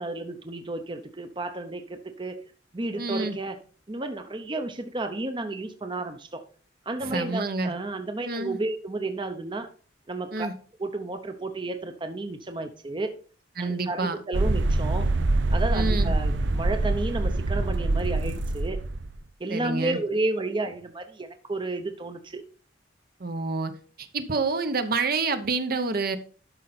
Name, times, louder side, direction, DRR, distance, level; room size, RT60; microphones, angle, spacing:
voice 1, 0.0-2.4 2.7-3.6 3.9-6.4 6.9-9.7 10.1-10.5 10.8-13.1 13.6-15.1 15.5-18.8 19.4-22.4, right 2 dB, 25° right, 8 dB, 0.8 m, -32 dB
voice 2, 3.0-3.4 7.0-7.7 8.2-8.6 10.3-10.5 13.6-14.2 15.7-16.1 19.5-20.0 23.2-23.7 24.0-26.2, right 3 dB, 55° right, 9 dB, 0.9 m, -28 dB
sound 1, 14.3-19.2, right 2 dB, 85° right, 0.8 m, -25 dB
12.0 x 5.4 x 4.2 m, 0.41 s
head